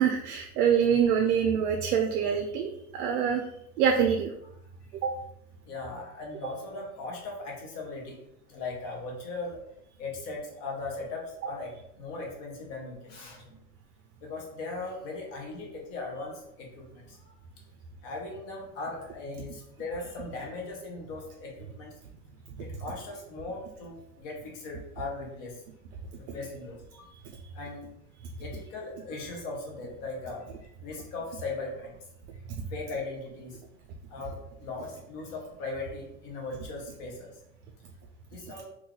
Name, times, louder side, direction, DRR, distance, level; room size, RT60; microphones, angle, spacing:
voice 1, 0.0-3.4 3.8-4.3 5.0-5.1, right 7 dB, 80° right, 4 dB, 0.6 m, -25 dB
voice 2, 5.6-8.2 8.5-9.6 10.0-11.7 12.0-13.6 14.2-17.3 18.0-21.9 22.6-25.6 26.2-27.1 27.5-27.8 28.4-30.5 30.8-32.0 32.7-33.6 34.1-37.3 38.3-38.6, left 3 dB, 20° left, -1 dB, 0.4 m, -38 dB
3.7 x 2.3 x 2.9 m, 0.79 s
supercardioid pair, 150°, 47 cm